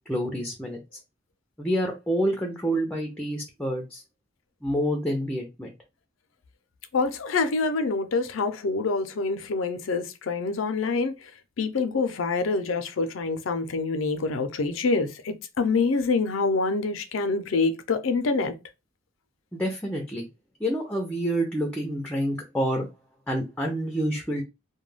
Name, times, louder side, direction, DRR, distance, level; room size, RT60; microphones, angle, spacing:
voice 1, 0.1-0.8 1.6-4.0 4.6-5.7 19.5-20.3 20.6-22.9 23.3-24.4, equal, 5° left, 0.4 m, -28 dB
voice 2, 6.9-11.3 11.6-18.5, left 4 dB, 85° left, 0.5 m, -26 dB
2.2 x 2.2 x 3.1 m
head